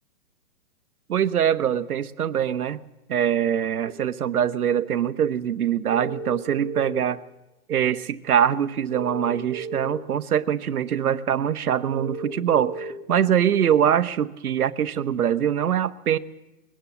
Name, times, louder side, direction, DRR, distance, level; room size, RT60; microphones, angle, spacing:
voice 1, 1.1-2.8 3.1-7.2 7.7-16.2, right 9 dB, 75° right, 12 dB, 1.1 m, -23 dB
sound 1, 3.8-3.9 5.9-7.1 8.9-9.9 11.9-12.9, right 4 dB, 15° right, 1.5 m, -34 dB
21.5 x 18.0 x 7.2 m, 0.96 s
hypercardioid pair, 165°, 44 cm